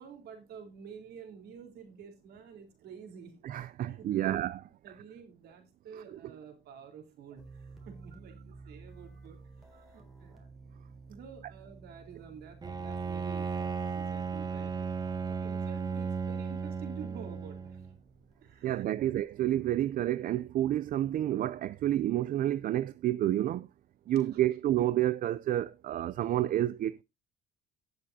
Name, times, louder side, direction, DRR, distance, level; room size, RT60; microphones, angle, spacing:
voice 1, 0.0-3.3 3.8-4.4 4.8-10.5 11.1-14.9 15.2-17.9 18.4-19.1 24.0-24.4, right 7 dB, 70° right, 3.8 m, -50 dB
voice 2, 3.4-4.5 18.6-23.7 24.1-27.0, right 13 dB, 55° right, 0.4 m, -29 dB
sound 1, 7.4-23.2, right 3 dB, ahead, 3.8 m, -55 dB
Bowed string instrument, 12.6-18.0, right 5 dB, 25° right, 0.8 m, -35 dB
18.0 x 6.7 x 2.7 m
cardioid pair, 110°, 17 cm